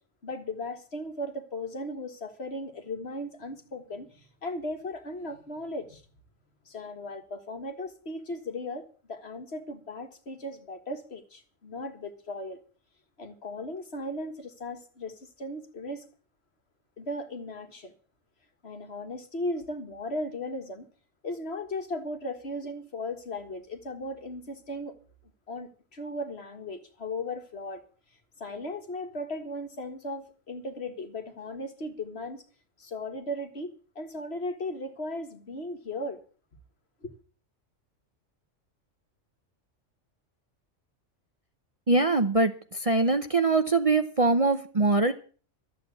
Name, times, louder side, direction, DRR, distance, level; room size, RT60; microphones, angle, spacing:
voice 1, 0.2-6.0 6.7-12.6 13.2-16.0 17.0-17.9 18.6-20.9 21.2-25.0 25.5-27.8 28.4-32.4 32.8-36.2 37.0-37.1, left 1 dB, 55° left, 2.0 m, -37 dB
voice 2, 41.9-45.1, right 3 dB, 30° right, 0.8 m, -23 dB
13.0 x 8.3 x 8.4 m
omnidirectional pair, 1.3 m